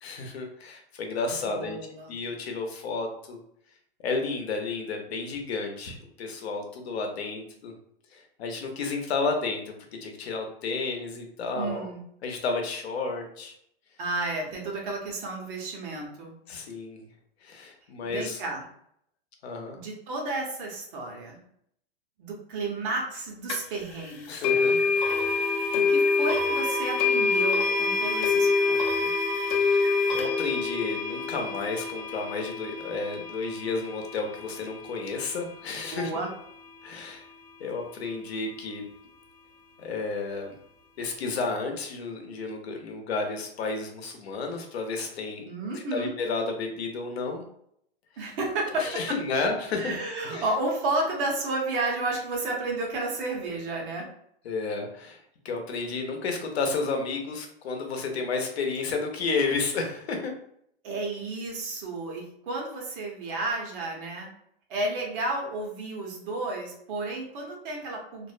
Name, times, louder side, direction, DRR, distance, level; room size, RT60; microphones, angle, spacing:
voice 1, 0.0-1.8 2.1-3.4 4.0-7.7 8.1-11.9 12.2-13.5 16.5-17.1 17.4-18.4 19.4-19.8 24.3-24.9 29.3-36.1 36.8-37.2 37.6-38.8 39.8-40.5 41.0-45.4 45.7-47.4 48.8-50.0 50.2-50.4 54.4-60.3, left 4 dB, 85° left, 3 dB, 0.7 m, -32 dB
voice 2, 1.4-2.1 11.5-12.0 14.0-16.3 18.0-18.6 19.7-21.4 22.2-24.8 25.5-29.1 35.7-36.3 45.5-46.1 48.2-48.9 49.8-54.1 60.8-64.3 64.7-68.3, right 2 dB, 55° right, 0 dB, 0.9 m, -32 dB
sound 1, 23.5-23.6 24.4-35.4, left 4 dB, 45° left, 0.5 m, -26 dB
2.5 x 2.1 x 2.4 m, 0.70 s
hypercardioid pair, 130°, 31 cm